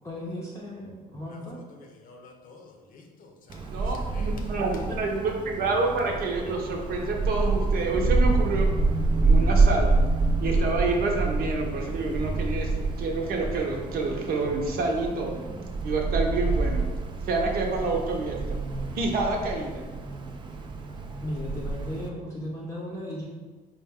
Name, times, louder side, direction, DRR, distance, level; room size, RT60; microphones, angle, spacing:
voice 1, 0.0-1.6 21.2-23.3, left 1 dB, 15° left, 0.6 m, -36 dB
voice 2, 1.3-4.6, left 3 dB, 55° left, 0.6 m, -50 dB
Wind, 3.5-22.1, right 3 dB, 30° right, 0.4 m, -27 dB
voice 3, 3.7-8.7 9.2-10.0 10.4-12.7 13.0-15.4 15.8-16.8 17.2-18.6 18.9-19.8, right 3 dB, 60° right, 0.7 m, -28 dB
4.4 x 2.2 x 3.5 m
cardioid pair, 110°, 17 cm